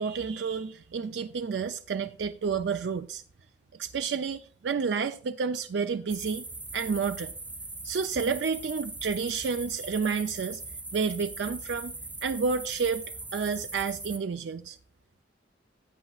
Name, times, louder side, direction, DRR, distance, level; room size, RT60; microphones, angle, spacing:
voice 1, 0.0-3.2 3.8-6.4 6.7-7.3 7.8-10.6 10.9-11.9 12.2-13.1 13.3-14.8, right 5 dB, 65° right, 0.4 m, -30 dB
sound 1, 6.1-14.2, right 2 dB, 10° right, 0.5 m, -40 dB
14.0 x 8.7 x 2.4 m
head